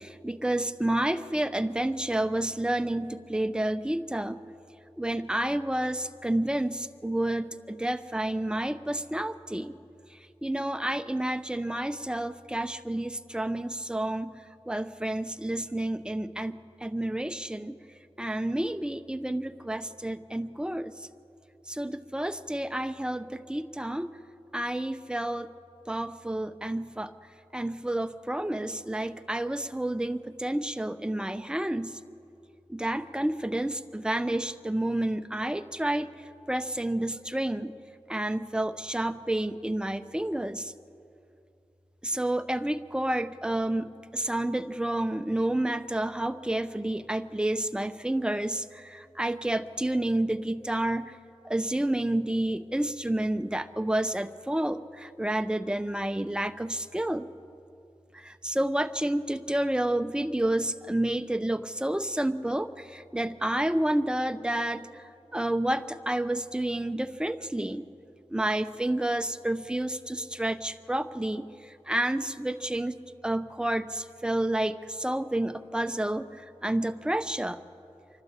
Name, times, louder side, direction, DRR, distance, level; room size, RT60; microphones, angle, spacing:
voice 1, 0.0-4.4 5.0-9.8 10.1-14.4 14.7-17.8 18.2-21.1 21.7-24.1 24.5-25.5 25.9-27.1 27.5-32.0 32.7-36.1 36.5-37.7 38.1-40.7 42.0-51.2 51.4-57.3 58.1-65.0 65.3-67.8 68.3-73.0 73.2-77.6, right 1 dB, 10° right, 10 dB, 0.8 m, -30 dB
26.5 x 12.0 x 8.1 m, 2.7 s
wide cardioid pair, 50°, 11 cm